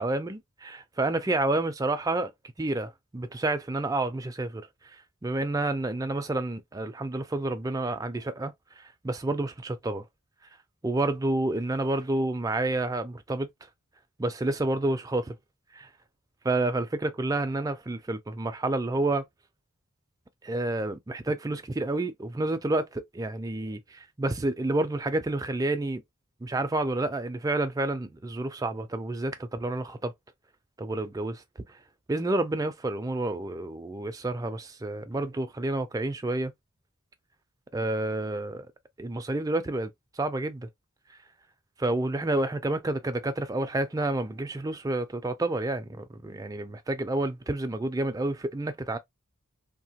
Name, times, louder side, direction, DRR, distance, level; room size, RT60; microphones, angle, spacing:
voice 1, 0.0-2.3 2.6-4.7 5.2-10.0 10.8-13.5 14.2-15.4 15.7-15.9 16.4-19.2 20.4-26.0 26.4-30.1 30.8-31.4 32.1-36.5 37.7-38.7 39.0-40.7 41.8-49.0, right 2 dB, 15° right, 0.4 m, -29 dB
2.8 x 2.1 x 2.8 m
head